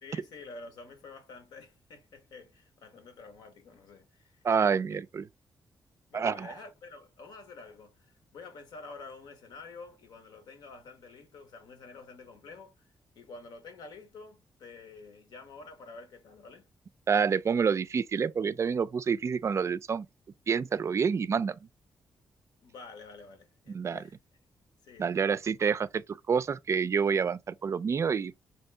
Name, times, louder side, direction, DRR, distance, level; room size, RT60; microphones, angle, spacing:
voice 1, 0.0-4.4 4.9-5.0 6.1-16.7 22.6-24.2 24.8-25.2, left 3 dB, 85° left, 1.0 m, -49 dB
voice 2, 4.4-5.2 6.1-6.5 17.1-20.1 20.5-21.6 23.7-24.0 25.0-28.4, right 6 dB, 45° right, 0.3 m, -28 dB
2.9 x 2.7 x 3.3 m
cardioid pair, 90°, 7 cm